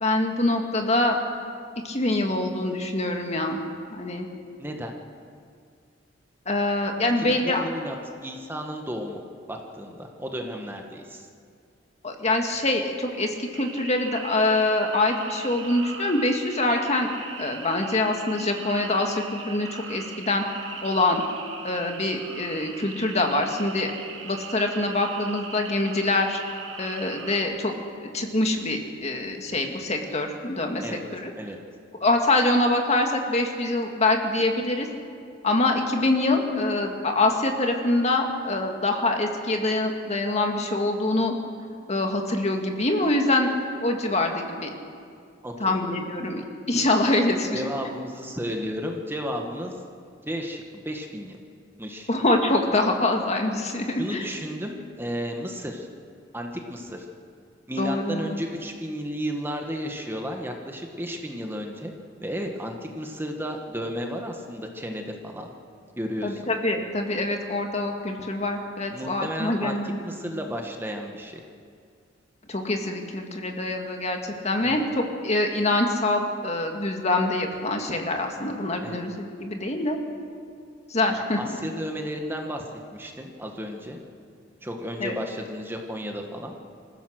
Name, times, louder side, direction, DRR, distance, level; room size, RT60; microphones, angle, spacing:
voice 1, 0.0-1.2 1.8-3.6 3.9-4.3 6.5-7.6 12.0-17.1 17.4-20.4 20.8-21.2 21.6-23.9 24.2-26.4 26.8-27.7 28.0-31.3 32.0-34.9 35.4-41.3 41.9-43.5 43.8-44.7 45.6-47.6 52.1-54.2 57.8-58.4 66.2-70.0 72.5-80.0 80.9-81.4 85.0-85.1, left 2 dB, 35° left, 3 dB, 2.0 m, -25 dB
voice 2, 4.6-5.0 7.2-7.9 8.2-9.2 9.5-11.3 30.8-31.0 31.3-31.6 45.4-45.8 47.5-49.7 50.2-51.4 51.8-52.1 54.0-55.9 56.3-57.1 57.7-61.9 62.2-65.5 66.0-66.5 68.9-69.8 70.0-71.4 74.6-74.8 78.8-79.0 81.4-84.0 84.6-86.5, equal, 10° right, 2 dB, 1.5 m, -33 dB
sound 1, 13.5-27.4, right 5 dB, 85° right, 2.4 m, -40 dB
26.5 x 15.5 x 6.5 m, 2.3 s
head